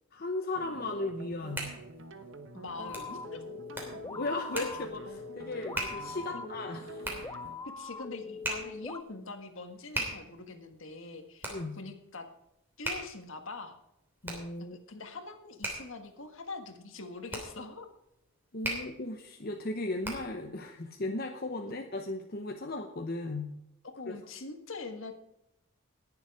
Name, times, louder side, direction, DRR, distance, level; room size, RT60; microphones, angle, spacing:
voice 1, 0.1-1.7 4.0-7.2 11.5-11.8 14.2-14.8 18.5-23.6 24.1-24.2, left 2 dB, 45° left, 3 dB, 0.9 m, -36 dB
sound 1, 0.5-7.6, right 2 dB, 60° right, 1.1 m, -48 dB
Hands, 1.1-20.5, right 1 dB, 10° right, 3.0 m, -41 dB
voice 2, 2.5-3.4 6.3-6.4 7.8-12.3 12.8-13.8 14.6-17.9 21.6-21.7 24.0-25.1, left 3 dB, 65° left, 6 dB, 1.7 m, -43 dB
sound 2, 2.8-9.0, left 4 dB, 15° left, 0.4 m, -42 dB
19.0 x 7.2 x 4.8 m, 0.86 s
head